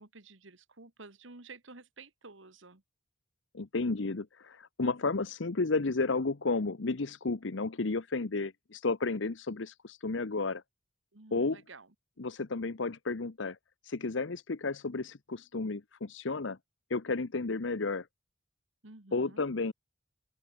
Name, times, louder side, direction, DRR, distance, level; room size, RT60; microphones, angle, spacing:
voice 1, 0.0-2.8 11.1-11.9 18.8-19.4, right 3 dB, 75° right, 2.0 m, -52 dB
voice 2, 3.5-10.6 11.3-11.6 12.2-13.6 13.8-16.6 16.9-18.1 19.1-19.7, left 3 dB, 70° left, 0.9 m, -32 dB
open air
head